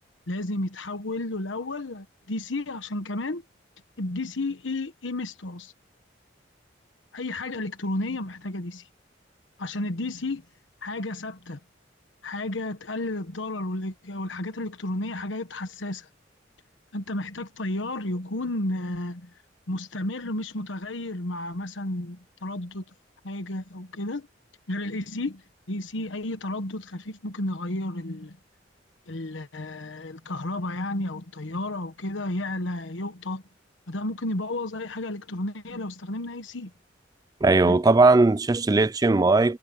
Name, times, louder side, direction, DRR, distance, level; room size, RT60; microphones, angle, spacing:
voice 1, 0.3-3.4 4.0-5.7 7.1-8.9 9.6-10.4 10.8-11.6 12.2-16.1 16.9-19.3 19.7-22.8 23.2-24.3 24.7-28.4 29.1-33.4 33.9-36.7 37.6-37.8, left 2 dB, 90° left, 1.3 m, -32 dB
voice 2, 37.4-39.6, right 3 dB, 20° right, 0.4 m, -18 dB
head